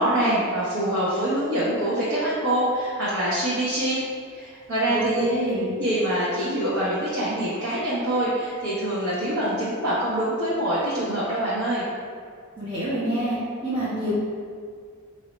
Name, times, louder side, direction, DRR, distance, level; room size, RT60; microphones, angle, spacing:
voice 1, 0.0-4.0 4.3-5.3 5.8-11.8, right 1 dB, 90° right, -9 dB, 1.0 m, -25 dB
voice 2, 4.9-5.7 12.6-13.3 13.6-14.1, right 1 dB, 25° right, -13 dB, 0.9 m, -26 dB
5.1 x 2.7 x 3.1 m, 2.1 s
head